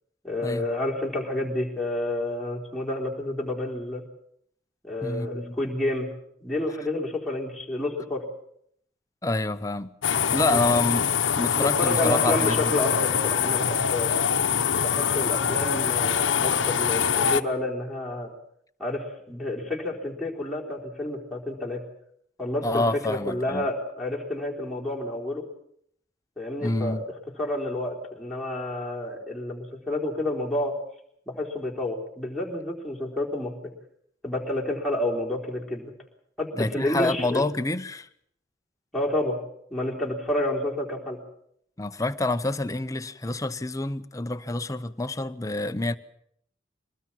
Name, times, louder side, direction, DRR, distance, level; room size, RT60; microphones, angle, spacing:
voice 1, 0.2-4.0 4.8-6.1 6.4-8.2 10.5-10.8 11.6-14.1 14.8-18.3 18.8-21.8 22.4-25.4 26.4-27.0 27.4-30.7 31.3-33.7 34.2-35.9 36.4-37.4 38.9-39.4 39.7-41.2, left 1 dB, ahead, 3.9 m, -29 dB
voice 2, 5.0-5.6 9.2-9.9 10.3-11.1 11.4-12.6 22.6-23.7 26.6-27.0 36.6-38.1 41.8-46.0, left 2 dB, 20° left, 0.8 m, -27 dB
sound 1, 10.0-17.4, left 7 dB, 90° left, 0.9 m, -24 dB
23.0 x 19.5 x 7.5 m
head